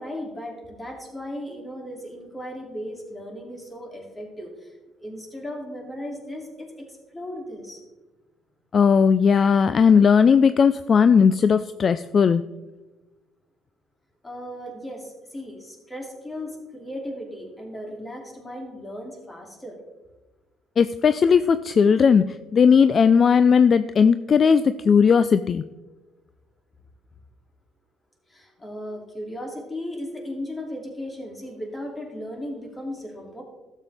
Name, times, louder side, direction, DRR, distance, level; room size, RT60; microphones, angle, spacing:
voice 1, 0.0-7.8 14.2-19.8 28.3-33.4, left 1 dB, 20° left, 1 dB, 2.7 m, -36 dB
voice 2, 8.7-12.4 20.8-25.6, left 6 dB, 45° left, 13 dB, 0.3 m, -17 dB
12.5 x 7.3 x 3.4 m, 1.2 s
supercardioid pair, 80°, 0 cm